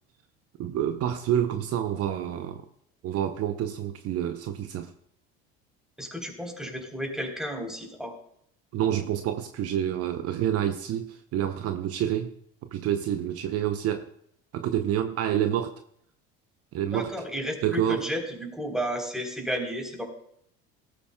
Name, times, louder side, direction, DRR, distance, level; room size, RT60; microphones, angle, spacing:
voice 1, 0.6-2.6 3.0-4.9 8.7-12.3 12.7-14.1 14.5-15.8 16.7-17.1 17.6-18.1, right 10 dB, 50° right, 0.8 m, -28 dB
voice 2, 6.0-8.1 16.9-20.0, equal, ahead, 3.7 m, -32 dB
18.0 x 13.5 x 2.3 m
hypercardioid pair, 85°, 30 cm